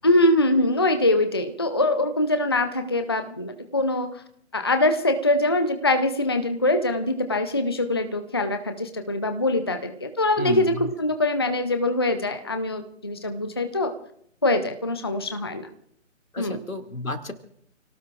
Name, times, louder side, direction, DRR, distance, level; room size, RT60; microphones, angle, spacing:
voice 1, 0.0-4.2 4.5-13.9 14.4-15.7 16.4-16.6, left 2 dB, 20° left, 8 dB, 0.5 m, -23 dB
voice 2, 10.4-10.9 16.3-17.3, left 2 dB, 90° left, 5 dB, 2.5 m, -31 dB
30.0 x 18.0 x 2.5 m, 0.66 s
figure-of-eight pair, 150°, 40 cm